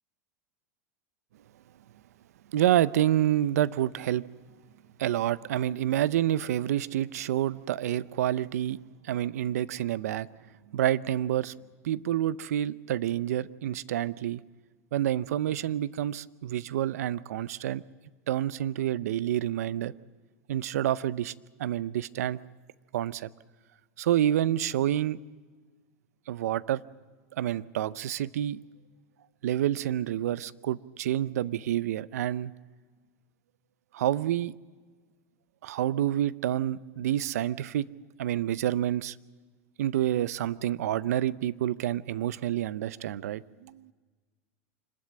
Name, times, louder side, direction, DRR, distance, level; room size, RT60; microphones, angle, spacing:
voice 1, 2.5-4.2 5.0-8.8 9.0-10.3 10.7-11.5 11.8-14.4 14.9-17.8 18.3-19.9 20.5-21.3 21.6-22.4 22.9-23.3 24.0-25.2 26.3-26.8 27.3-28.6 29.4-32.5 33.9-34.5 35.6-37.9 38.2-39.2 39.8-43.9, right 12 dB, 85° right, 0.6 m, -28 dB
25.5 x 13.0 x 8.7 m
hypercardioid pair, 115°, 8 cm